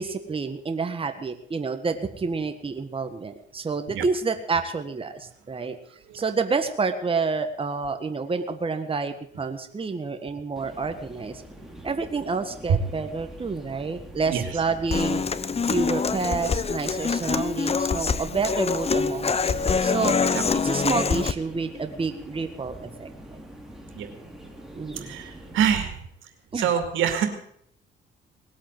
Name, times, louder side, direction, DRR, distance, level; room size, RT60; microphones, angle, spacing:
voice 1, 0.0-5.8 6.1-11.4 11.8-15.2 15.6-20.1 20.5-23.1 24.8-25.1 26.5-26.7, right 4 dB, 25° right, 7 dB, 1.6 m, -29 dB
sound 1, 10.6-25.8, right 1 dB, ahead, 3.3 m, -44 dB
Human voice / Acoustic guitar, 14.9-21.3, left 5 dB, 30° left, 0.8 m, -25 dB
voice 2, 25.0-26.1 26.5-27.3, right 8 dB, 85° right, 7 dB, 2.6 m, -25 dB
19.5 x 8.4 x 7.8 m, 0.68 s
cardioid pair, 90°, 20 cm